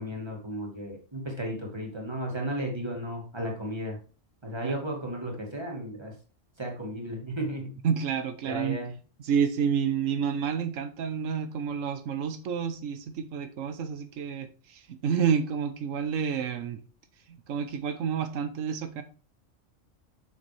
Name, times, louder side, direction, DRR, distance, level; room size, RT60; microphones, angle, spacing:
voice 1, 0.0-4.0 4.4-6.1 6.6-7.8 8.4-8.9, equal, 20° right, 2.2 m, -34 dB
voice 2, 7.8-8.8 9.2-16.8 17.5-19.0, right 7 dB, 85° right, 1.2 m, -29 dB
7.1 x 6.5 x 3.3 m
omnidirectional pair, 1.3 m